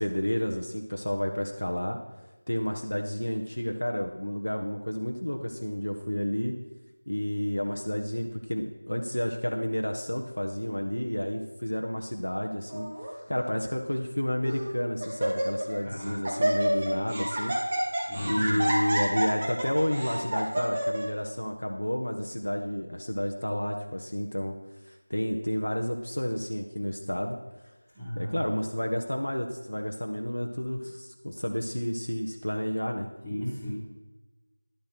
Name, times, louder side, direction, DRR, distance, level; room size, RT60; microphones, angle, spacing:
voice 1, 0.0-2.0 2.5-6.6 7.1-17.5 18.3-24.6 24.9-27.4 28.2-33.1, equal, 80° left, 3 dB, 1.3 m, -31 dB
Laughter, 12.7-13.1 13.9-14.0 14.5-14.7 15.0-15.8 16.0-21.0, right 1 dB, 20° right, 1.8 m, -29 dB
voice 2, 15.8-16.5 17.0-17.2 18.1-18.6 27.9-28.5 33.2-33.7, equal, 5° right, -16 dB, 2.8 m, -35 dB
11.5 x 7.4 x 6.0 m, 1.1 s
figure-of-eight pair, 175°, 0 cm